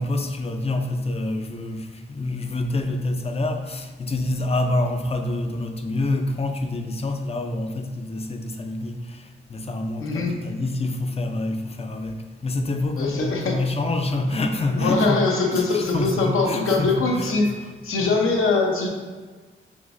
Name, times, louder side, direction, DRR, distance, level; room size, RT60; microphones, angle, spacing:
voice 1, 0.0-15.2 15.5-17.3 18.0-18.1, left 2 dB, 30° left, 0.4 m, -27 dB
voice 2, 10.0-10.4 13.0-13.6 14.7-17.6 17.8-18.9, left 3 dB, 80° left, 0.8 m, -22 dB
5.2 x 3.4 x 2.5 m
wide cardioid pair, 110°, 21 cm